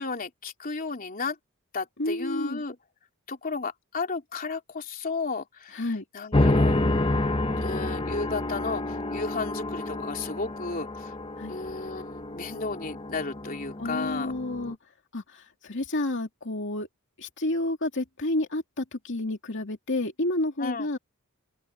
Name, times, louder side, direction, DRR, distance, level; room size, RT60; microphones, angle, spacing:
voice 1, 0.0-1.4 1.7-2.8 3.3-6.8 7.6-11.1 11.5-14.3 20.6-20.9, left 4 dB, 40° left, 3.2 m, -33 dB
voice 2, 2.0-2.6 5.7-6.0 11.4-11.5 13.8-14.8 15.1-16.9 17.2-21.0, left 1 dB, 60° left, 2.6 m, -30 dB
sound 1, 6.3-14.7, left 2 dB, 25° left, 0.9 m, -28 dB
open air
head